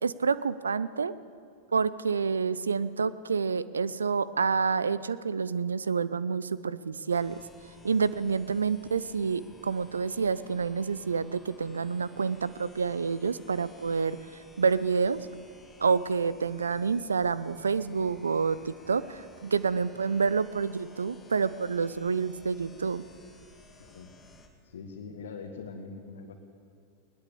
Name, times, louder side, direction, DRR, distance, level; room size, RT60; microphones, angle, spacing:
voice 1, 0.0-1.1 1.7-7.4 7.8-15.2 15.8-23.0, right 5 dB, 75° right, 17 dB, 0.6 m, -28 dB
sound 1, 7.1-24.5, left 2 dB, 10° left, 2.6 m, -56 dB
voice 2, 23.8-24.1 24.6-26.4, left 4 dB, 65° left, 1 dB, 1.7 m, -42 dB
20.0 x 19.5 x 7.0 m, 2.4 s
figure-of-eight pair, 90°, 0 cm